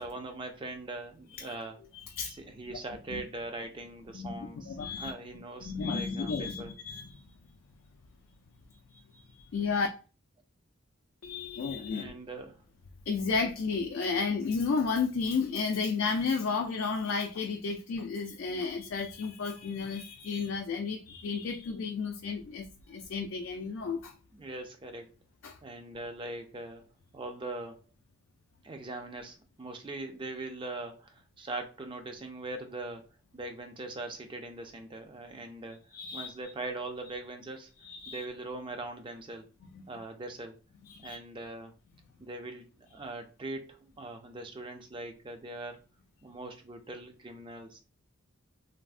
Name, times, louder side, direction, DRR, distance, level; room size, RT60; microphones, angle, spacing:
voice 1, 0.0-1.8 2.2-6.7 11.8-12.6 24.3-25.1 25.6-26.8 27.1-27.8 28.6-33.0 33.3-35.8 36.1-37.7 38.1-39.5 39.9-40.6 41.0-41.7 42.2-45.8 46.2-47.8, right 2 dB, 25° right, 0.3 m, -41 dB
voice 2, 1.9-2.4 2.7-2.8 3.1-3.2 4.1-5.1 5.6-7.2 9.1-9.9 11.2-12.2 13.1-24.1 25.4-25.5 35.9-36.3 37.8-38.2 39.7-39.8 40.9-41.2, left 5 dB, 60° left, 0.3 m, -32 dB
3.2 x 2.0 x 2.4 m
head